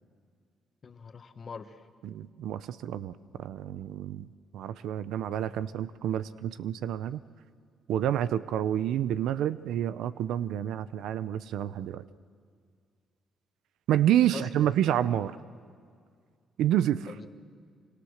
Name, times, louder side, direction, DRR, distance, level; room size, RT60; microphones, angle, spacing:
voice 1, 0.8-1.9 14.3-14.7 17.1-17.3, left 5 dB, 45° left, 8 dB, 1.6 m, -43 dB
voice 2, 2.0-3.1 3.4-4.3 4.5-7.2 7.9-12.0 13.9-15.4 16.6-17.1, right 11 dB, 85° right, 15 dB, 0.7 m, -28 dB
26.0 x 26.0 x 6.6 m, 2.1 s
cardioid pair, 90°, 0 cm